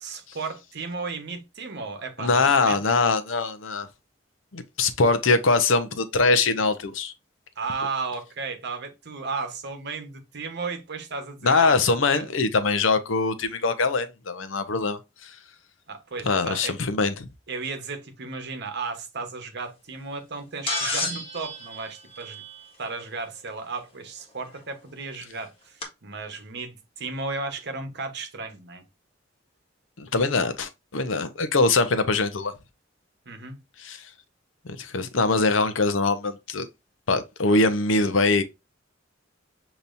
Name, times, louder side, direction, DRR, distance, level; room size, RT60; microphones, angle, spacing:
voice 1, 0.0-2.8 7.6-11.8 12.1-12.3 15.9-16.8 17.5-22.4 22.8-28.8 33.3-33.6, right 4 dB, 60° right, 1.1 m, -34 dB
voice 2, 2.2-3.9 4.5-7.1 11.4-15.4 16.3-17.3 30.0-32.5 33.8-34.1 34.6-36.7 37.1-38.4, left 3 dB, 85° left, 0.7 m, -23 dB
sound 1, 20.7-23.0 24.5-24.6 25.8-25.9, left 2 dB, 30° left, 1.6 m, -31 dB
6.8 x 2.9 x 2.6 m
head